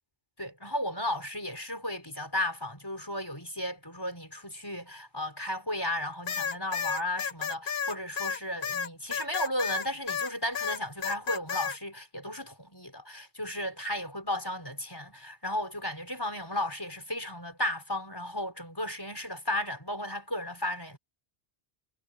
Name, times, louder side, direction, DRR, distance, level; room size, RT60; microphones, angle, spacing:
voice 1, 0.4-21.0, left 1 dB, 20° left, 5.0 m, -34 dB
sound 1, 6.3-10.3 10.6-11.8, left 7 dB, 55° left, 1.0 m, -32 dB
omnidirectional pair, 1.1 m